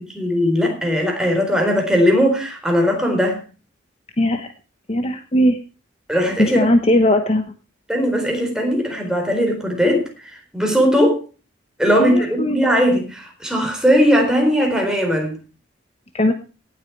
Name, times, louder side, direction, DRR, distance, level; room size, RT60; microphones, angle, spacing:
voice 1, 0.1-3.4 6.1-6.6 7.9-10.1 10.5-11.2 11.8-15.3, equal, 5° right, 2 dB, 4.3 m, -18 dB
voice 2, 4.2-4.5 4.9-5.6 6.4-7.4 12.0-12.6 16.1-16.3, left 1 dB, 30° left, 7 dB, 1.1 m, -18 dB
18.0 x 8.6 x 4.6 m, 0.33 s
head